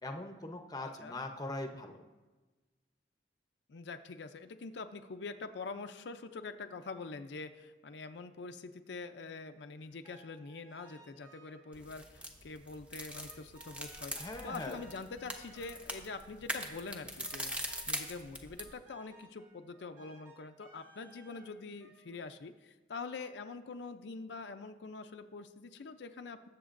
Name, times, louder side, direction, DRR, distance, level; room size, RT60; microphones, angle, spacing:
voice 1, 0.0-2.0 14.2-14.8, left 2 dB, 20° left, 4 dB, 0.7 m, -41 dB
voice 2, 0.8-1.2 3.7-26.5, left 4 dB, 70° left, 7 dB, 0.5 m, -45 dB
sound 1, 9.8-11.8 13.1-16.5 17.2-22.2, right 2 dB, 50° right, 2.6 m, -60 dB
sound 2, 11.7-18.7, equal, 5° right, 0.8 m, -42 dB
21.0 x 7.3 x 2.5 m, 1.2 s
head